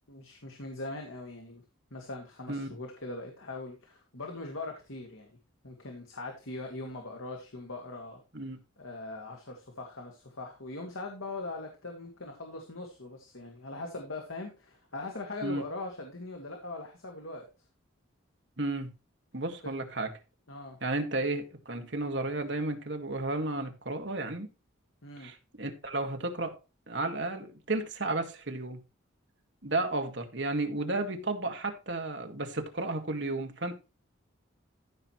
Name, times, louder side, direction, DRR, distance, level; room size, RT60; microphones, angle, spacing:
voice 1, 0.1-1.6 1.9-5.4 5.6-8.2 8.8-17.5 19.6-19.7 20.5-20.8 25.0-25.3, left 2 dB, 80° left, 2.0 m, -41 dB
voice 2, 18.6-18.9 19.3-20.1 20.8-24.5 25.2-26.6 26.9-28.8 29.6-33.7, right 2 dB, 60° right, 1.9 m, -33 dB
14.5 x 6.1 x 3.1 m
head